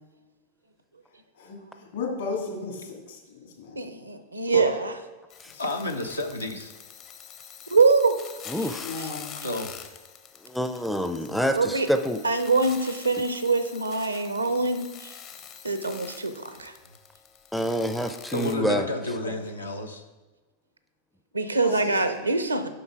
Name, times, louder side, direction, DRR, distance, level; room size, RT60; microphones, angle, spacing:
voice 1, 1.4-4.0 5.5-5.6 8.8-9.5 21.6-22.1, left 4 dB, 65° left, 0 dB, 2.1 m, -35 dB
voice 2, 3.8-4.9 7.7-8.2 8.6-8.7 9.0-9.1 11.6-11.9 12.2-15.1 15.6-16.7 21.3-22.7, right 4 dB, 80° right, 9 dB, 0.7 m, -24 dB
sound 1, 5.3-18.5, left 8 dB, 35° left, 0.7 m, -45 dB
voice 3, 5.6-6.7 9.4-9.7 11.3-11.4 18.3-20.0, left 1 dB, 85° left, 4 dB, 0.6 m, -31 dB
voice 4, 8.5-8.9 10.5-12.2 17.5-18.8, equal, ahead, 7 dB, 0.4 m, -27 dB
7.9 x 5.6 x 4.6 m, 1.2 s
figure-of-eight pair, 90°, 0 cm